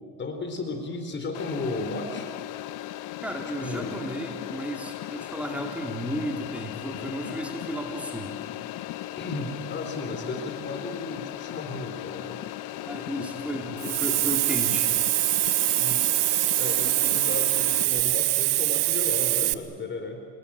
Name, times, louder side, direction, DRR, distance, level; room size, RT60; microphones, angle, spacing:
voice 1, 0.2-2.3 3.6-4.0 9.2-12.4 15.8-16.2 16.6-20.2, left 3 dB, 35° left, 6 dB, 4.1 m, -34 dB
sound 1, 1.3-17.9, left 15 dB, 65° left, 1.2 m, -37 dB
voice 2, 3.2-8.4 12.8-15.0, equal, 5° right, 1 dB, 4.2 m, -34 dB
Hiss, 13.8-19.5, right 20 dB, 70° right, 1.1 m, -24 dB
28.5 x 21.0 x 9.0 m, 2.2 s
supercardioid pair, 105°, 34 cm